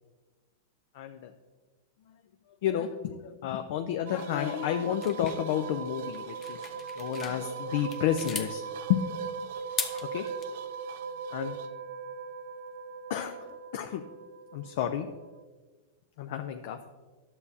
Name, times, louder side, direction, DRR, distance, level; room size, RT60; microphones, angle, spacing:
voice 1, 0.9-1.3 2.1-2.2 2.5-6.7 6.9-8.6 8.9-9.1 9.4-9.5 9.9-10.3 11.3-11.6 13.1-14.1 14.5-15.1 16.2-16.8, left 10 dB, 65° left, 7 dB, 0.5 m, -31 dB
sound 1, 4.1-15.4, right 5 dB, 65° right, 0.5 m, -39 dB
sound 2, 5.0-7.4 7.8-8.5 9.6-10.5, left 6 dB, 25° left, 0.7 m, -38 dB
11.0 x 7.1 x 2.7 m, 1.3 s
hypercardioid pair, 130°, 0 cm